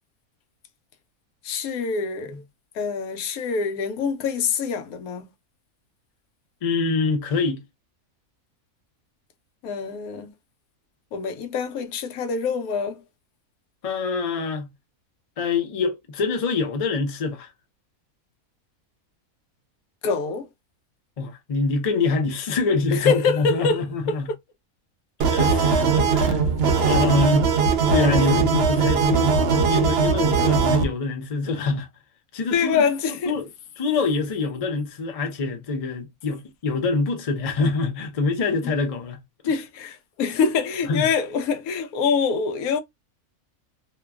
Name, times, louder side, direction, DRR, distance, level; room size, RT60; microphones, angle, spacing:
voice 1, 1.4-2.3 2.7-5.2 9.6-10.3 11.1-13.0 20.0-20.5 23.0-24.2 32.5-33.3 39.4-42.8, left 5 dB, 80° left, 1.1 m, -25 dB
voice 2, 6.6-7.6 13.8-14.7 15.4-17.5 21.2-24.3 25.2-26.4 26.8-27.5 27.9-31.9 32.3-32.9 33.3-33.4 33.8-39.2 39.4-39.5 40.9-41.1, left 4 dB, 60° left, 0.3 m, -25 dB
sound 1, 25.2-30.9, right 5 dB, 60° right, 0.7 m, -20 dB
2.9 x 2.2 x 2.2 m
omnidirectional pair, 1.5 m